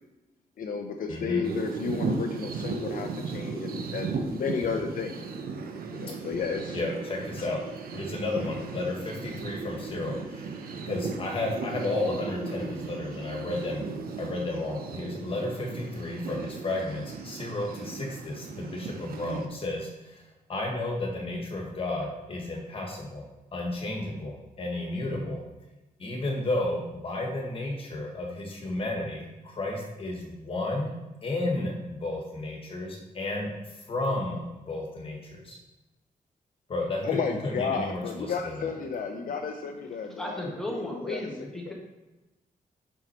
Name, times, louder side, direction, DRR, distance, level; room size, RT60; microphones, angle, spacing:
voice 1, 0.6-5.2 5.9-6.8 7.4-7.5 37.0-41.2 41.6-41.7, left 5 dB, 65° left, 4 dB, 0.6 m, -32 dB
voice 2, 1.1-1.4 6.1-6.2 6.7-7.6 7.9-10.5 10.8-13.9 14.2-20.2 20.5-23.3 23.5-25.4 26.0-30.9 31.2-35.6 36.7-38.7, left 2 dB, 35° left, 0 dB, 1.4 m, -32 dB
sound 1, 1.4-19.5, right 4 dB, 75° right, 0.8 m, -36 dB
voice 3, 40.2-41.7, left 1 dB, 5° left, -2 dB, 1.3 m, -35 dB
5.8 x 5.5 x 4.3 m, 1.1 s
wide cardioid pair, 175°, 15 cm